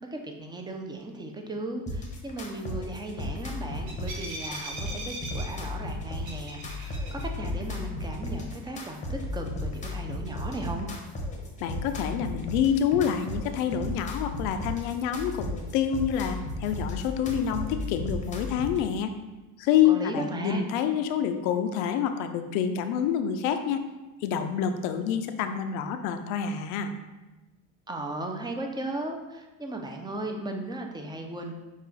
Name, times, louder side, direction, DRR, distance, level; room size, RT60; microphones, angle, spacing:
voice 1, 0.0-10.9 19.8-20.6 27.9-31.5, right 2 dB, 10° right, 3 dB, 0.5 m, -36 dB
sound 1, 1.9-18.8, left 2 dB, 20° left, 0.8 m, -35 dB
sound 2, 3.3-8.2, right 1 dB, 75° right, 1.2 m, -42 dB
voice 2, 11.6-19.1 19.6-23.8 24.2-26.9, left 8 dB, 85° left, 8 dB, 0.5 m, -27 dB
5.6 x 2.4 x 3.8 m, 1.1 s
supercardioid pair, 115°, 39 cm